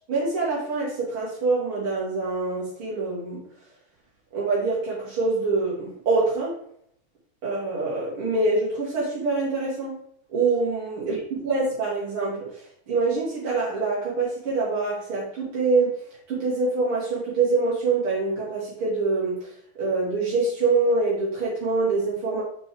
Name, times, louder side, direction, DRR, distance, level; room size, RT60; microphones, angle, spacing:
voice 1, 0.1-3.4 4.3-6.6 7.4-9.9 10.3-15.9 16.3-19.5 19.8-22.4, right 3 dB, 50° right, -7 dB, 1.6 m, -25 dB
6.7 x 6.5 x 3.4 m, 0.67 s
omnidirectional pair, 5.7 m